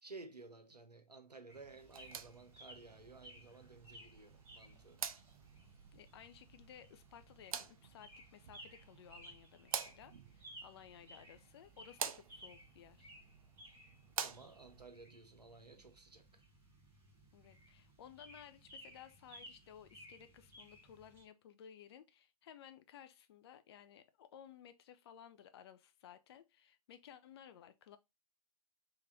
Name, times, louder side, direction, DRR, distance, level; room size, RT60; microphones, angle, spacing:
voice 1, 0.0-5.0 14.2-16.4, right 3 dB, 90° right, 0.8 m, -55 dB
sound 1, 1.5-21.2, equal, 10° right, 1.4 m, -59 dB
sound 2, 1.8-14.8, right 7 dB, 60° right, 0.5 m, -48 dB
voice 2, 5.9-13.1 17.3-28.0, left 9 dB, 40° left, 0.6 m, -57 dB
3.5 x 3.2 x 3.9 m
figure-of-eight pair, 120°, 20 cm